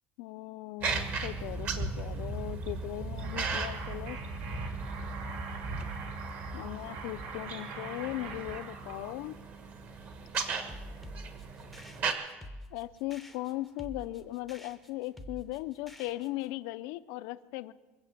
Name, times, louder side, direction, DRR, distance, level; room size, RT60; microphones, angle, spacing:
voice 1, 0.2-4.2 6.5-9.4 12.7-17.7, left 17 dB, 75° left, 13 dB, 0.6 m, -38 dB
sound 1, 0.8-12.1, right 4 dB, 35° right, 1.4 m, -37 dB
sound 2, 3.2-9.1, right 5 dB, 75° right, 2.4 m, -44 dB
sound 3, 10.3-16.5, equal, ahead, 0.8 m, -48 dB
23.0 x 7.8 x 7.4 m, 1.2 s
cardioid pair, 175°, 5 cm